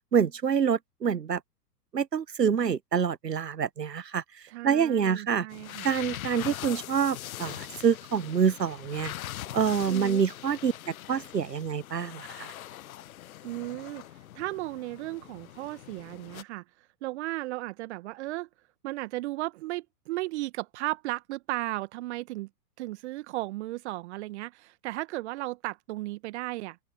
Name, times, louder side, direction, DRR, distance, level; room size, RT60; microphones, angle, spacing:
voice 1, 0.1-1.4 1.9-4.2 4.6-5.5 5.8-9.1 9.5-12.5, right 7 dB, 90° right, 0.9 m, -26 dB
voice 2, 4.5-5.9 9.9-10.2 13.4-14.0 14.3-16.6 17.0-18.5 18.8-22.5 22.8-26.8, right 18 dB, 45° right, 1.5 m, -35 dB
sound 1, 5.5-16.4, left 13 dB, 60° left, 0.8 m, -42 dB
open air
figure-of-eight pair, 105°, 47 cm